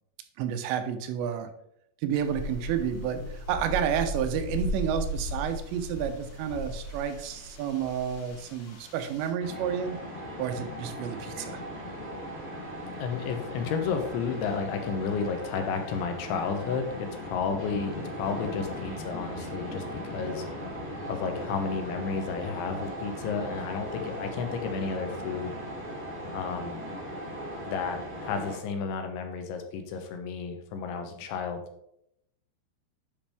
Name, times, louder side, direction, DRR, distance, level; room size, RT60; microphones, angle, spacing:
voice 1, 0.4-1.5 2.0-10.0 10.4-11.6, right 8 dB, 80° right, 8 dB, 3.0 m, -30 dB
A windy night, 2.1-9.3, left 1 dB, 65° left, 3.5 m, -37 dB
sound 1, 9.4-28.6, equal, 20° right, 0.3 m, -38 dB
voice 2, 13.0-20.4 21.1-25.5 26.3-26.8 27.7-31.6, left 5 dB, 85° left, 5 dB, 3.4 m, -32 dB
10.0 x 5.2 x 3.4 m, 0.75 s
omnidirectional pair, 5.2 m